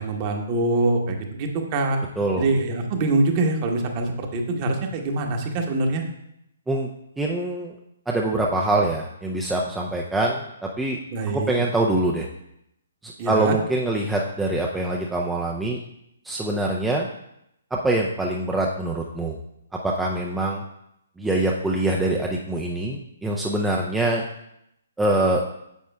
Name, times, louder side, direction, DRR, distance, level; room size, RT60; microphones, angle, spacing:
voice 1, 0.0-2.0 2.4-6.0 11.1-11.6 13.2-13.6, right 2 dB, 30° right, 3 dB, 1.2 m, -24 dB
voice 2, 7.2-7.7 8.1-11.0 11.3-12.3 13.0-15.8 16.2-17.1 17.7-19.4 19.8-20.6 21.2-24.2 25.0-25.5, right 2 dB, 5° right, -2 dB, 0.6 m, -24 dB
9.5 x 7.2 x 2.3 m, 0.80 s
figure-of-eight pair, 130°, 0 cm